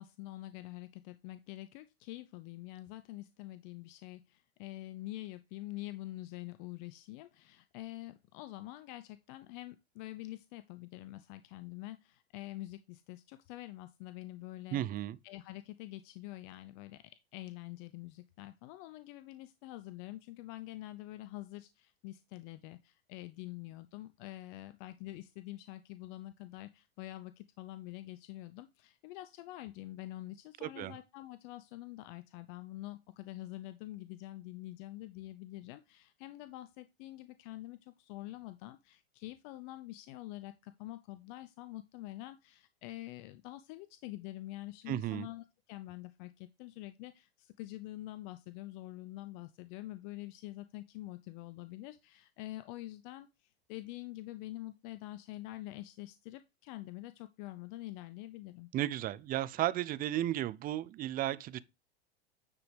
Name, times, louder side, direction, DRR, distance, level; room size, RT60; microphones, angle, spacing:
voice 1, 0.0-14.8 15.2-58.7, left 17 dB, 50° left, 0.7 m, -46 dB
voice 2, 14.7-15.2 30.6-30.9 44.9-45.3 58.7-61.6, right 13 dB, 30° right, 0.5 m, -34 dB
9.6 x 4.9 x 3.3 m
hypercardioid pair, 100°, 31 cm